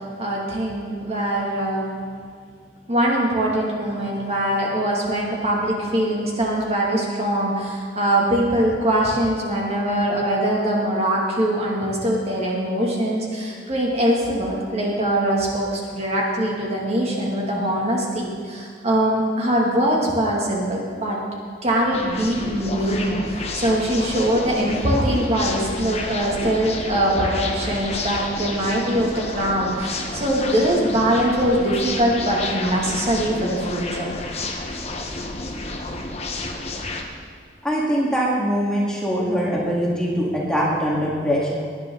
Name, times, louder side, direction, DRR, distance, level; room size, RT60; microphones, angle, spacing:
voice 1, 0.2-1.9 2.9-21.2 21.6-34.1, right 1 dB, 35° right, -3 dB, 2.5 m, -22 dB
sound 1, 21.9-37.0, left 2 dB, 35° left, 1.3 m, -30 dB
voice 2, 37.6-41.5, equal, 5° left, -5 dB, 2.2 m, -22 dB
18.5 x 10.5 x 4.0 m, 2.2 s
head